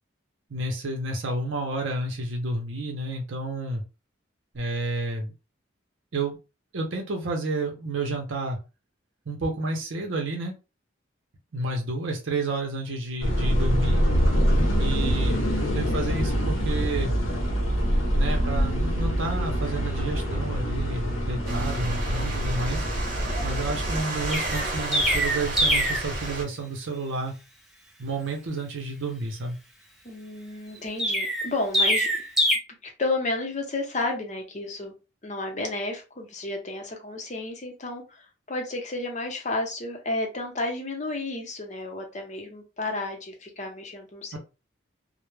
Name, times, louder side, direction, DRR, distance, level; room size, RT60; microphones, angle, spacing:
voice 1, 0.5-3.8 4.5-5.3 6.1-6.4 6.7-8.6 9.3-10.6 11.5-14.0 14.8-15.5 15.7-17.2 18.1-22.9 23.4-27.3 28.0-29.6 44.3-44.4, right 2 dB, 75° right, 2 dB, 0.6 m, -30 dB
sound 1, 13.2-24.0, equal, 90° left, 0.7 m, -25 dB
sound 2, 21.4-26.4, right 1 dB, 40° right, 0.8 m, -32 dB
Chirp tweet, 24.3-26.1 31.0-32.6, equal, ahead, 0.3 m, -23 dB
voice 2, 30.0-32.1 33.0-34.9 35.2-44.4, left 2 dB, 35° left, 2 dB, 0.6 m, -32 dB
2.1 x 2.0 x 3.1 m, 0.29 s
head